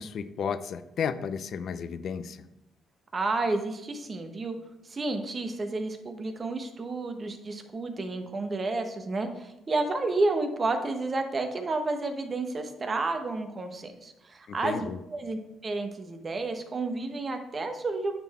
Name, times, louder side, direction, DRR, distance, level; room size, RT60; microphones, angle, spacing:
voice 1, 0.0-2.4 14.5-15.0, left 7 dB, 65° left, 13 dB, 0.5 m, -33 dB
voice 2, 3.1-4.6 4.8-18.2, right 3 dB, 35° right, 6 dB, 1.1 m, -31 dB
9.3 x 4.0 x 4.2 m, 0.90 s
cardioid pair, 90°, 0 cm